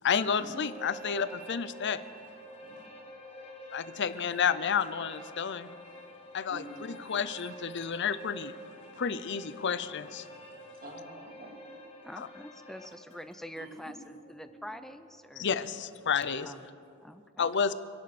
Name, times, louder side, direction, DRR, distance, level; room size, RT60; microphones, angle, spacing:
voice 1, 0.0-2.0 3.7-5.7 6.3-6.6 7.1-8.5 9.0-10.3 12.2-12.3 15.4-16.5 17.4-17.7, left 7 dB, 50° left, 14 dB, 0.6 m, -30 dB
sound 1, 0.5-13.4 13.9-16.5, right 1 dB, 25° left, 1.6 m, -48 dB
voice 2, 3.9-4.2 6.5-7.1 10.8-11.7 13.6-14.0 16.8-16.9, equal, 40° right, 0 dB, 2.5 m, -48 dB
voice 3, 12.0-15.5 16.4-16.6 17.0-17.5, equal, ahead, 10 dB, 0.5 m, -45 dB
27.5 x 11.0 x 4.3 m, 2.5 s
head